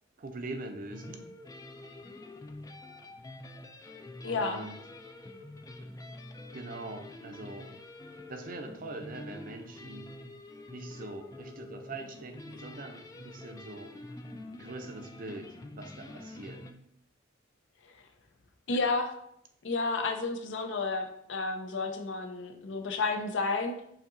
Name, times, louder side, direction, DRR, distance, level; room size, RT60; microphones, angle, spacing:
voice 1, 0.2-1.3 4.2-4.8 6.5-7.7 8.3-10.1 10.7-13.9 14.5-15.5 15.8-16.6, right 2 dB, 45° right, 5 dB, 0.6 m, -42 dB
sound 1, 0.9-16.7, left 2 dB, 20° left, 0.3 m, -47 dB
voice 2, 4.2-4.6 18.7-19.1 19.6-23.7, left 3 dB, 70° left, 5 dB, 0.6 m, -31 dB
7.0 x 2.8 x 2.6 m, 0.74 s
head